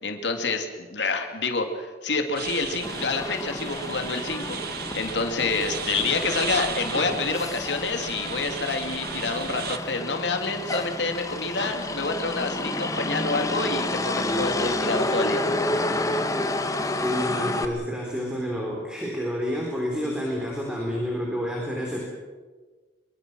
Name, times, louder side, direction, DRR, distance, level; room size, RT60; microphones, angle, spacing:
voice 1, 0.0-4.6 4.9-15.4, left 3 dB, 90° left, 5 dB, 2.6 m, -28 dB
sound 1, 2.4-9.8, right 7 dB, 60° right, 1.4 m, -35 dB
Motor vehicle (road), 2.8-17.7, left 2 dB, 20° left, 1.5 m, -30 dB
voice 2, 16.8-22.0, equal, 5° right, -2 dB, 4.0 m, -29 dB
25.0 x 23.0 x 6.2 m, 1.4 s
head